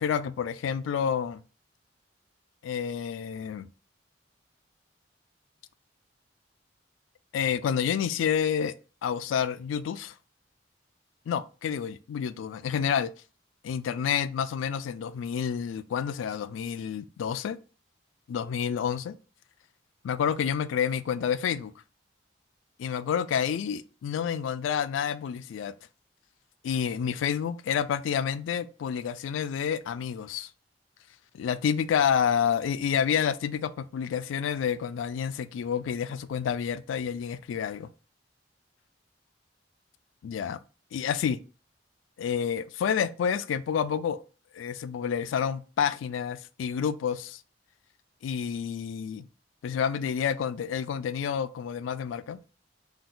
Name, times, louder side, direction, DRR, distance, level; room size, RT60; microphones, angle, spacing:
voice 1, 0.0-1.4 2.6-3.7 7.3-8.7 9.0-10.1 11.3-13.1 13.6-17.6 18.3-19.2 20.0-21.7 22.8-25.7 26.6-30.5 31.3-37.9 40.2-40.6 40.9-41.4 42.2-44.2 44.5-47.4 48.2-49.2 49.6-52.4, left 7 dB, 85° left, 0.3 m, -29 dB
3.9 x 2.5 x 3.7 m
head